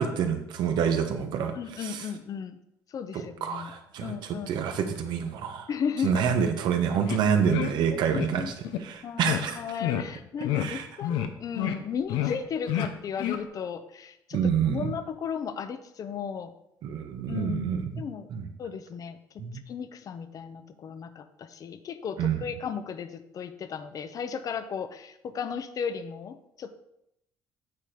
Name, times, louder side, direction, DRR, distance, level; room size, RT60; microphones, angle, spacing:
voice 1, 0.0-2.0 3.1-4.1 4.5-5.7 6.0-8.5 8.8-9.6 10.6-10.9 14.3-14.9 16.8-17.9 18.3-18.5 19.4-19.6 22.2-22.4, right 7 dB, 70° right, 6 dB, 1.1 m, -27 dB
voice 2, 1.5-2.6 2.9-3.7 4.0-4.5 5.7-6.2 7.9-8.5 9.0-16.5 17.3-18.3 18.6-26.8, left 7 dB, 50° left, 11 dB, 0.7 m, -35 dB
sound 1, 7.1-7.2 7.5-7.7 8.1-8.3 8.6-8.8 9.2-9.4 9.8-10.0 10.4-10.7 11.0-11.3 11.5-11.8 12.1-12.4 12.7-12.9 13.2-13.4, left 11 dB, 85° left, 0.7 m, -28 dB
8.5 x 4.4 x 5.0 m, 0.80 s
cardioid pair, 90°, 8 cm